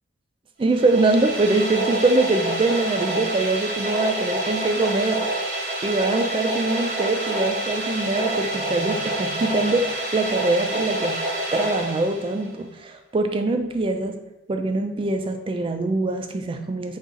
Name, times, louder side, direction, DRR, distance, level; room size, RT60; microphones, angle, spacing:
voice 1, 0.6-5.3 5.8-11.2 11.5-14.2 14.5-17.0, right 2 dB, 30° right, 6 dB, 0.3 m, -23 dB
sound 1, 0.6-12.6, right 1 dB, 65° right, 0.9 m, -27 dB
3.9 x 2.4 x 3.8 m, 0.92 s
head